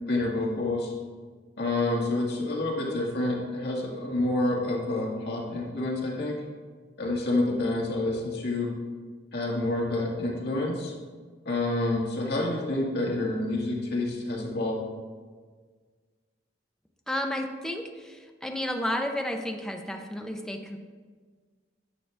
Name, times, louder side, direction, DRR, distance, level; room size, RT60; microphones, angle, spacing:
voice 1, 0.1-0.9 1.6-6.4 7.0-8.7 9.3-10.9 11.5-14.8, left 2 dB, 60° left, -3 dB, 1.8 m, -28 dB
voice 2, 17.1-20.8, left 1 dB, 5° left, 3 dB, 0.7 m, -32 dB
10.5 x 7.3 x 3.4 m, 1.5 s
head